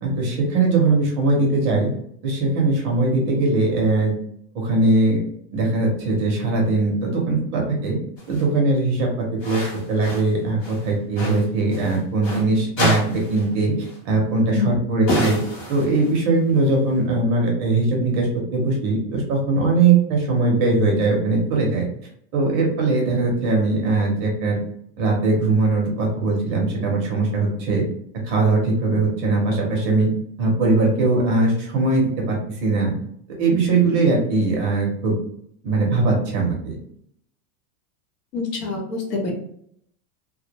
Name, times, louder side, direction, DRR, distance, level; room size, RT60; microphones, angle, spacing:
voice 1, 0.0-1.9 2.2-4.1 4.5-5.2 5.5-8.0 8.3-13.7 14.0-15.4 15.7-21.8 22.3-24.6 25.0-27.8 28.2-30.1 30.4-32.9 33.4-35.2 35.6-36.7, right 3 dB, 30° right, -1 dB, 0.5 m, -20 dB
sound 1, 8.2-8.5 9.4-10.3 10.6-12.4 12.8-13.5 13.8-14.0 15.1-16.2, left 1 dB, 30° left, 0.6 m, -28 dB
voice 2, 38.3-39.3, left 4 dB, 80° left, 0 dB, 1.0 m, -26 dB
2.2 x 2.1 x 2.8 m, 0.69 s
supercardioid pair, 160°, 47 cm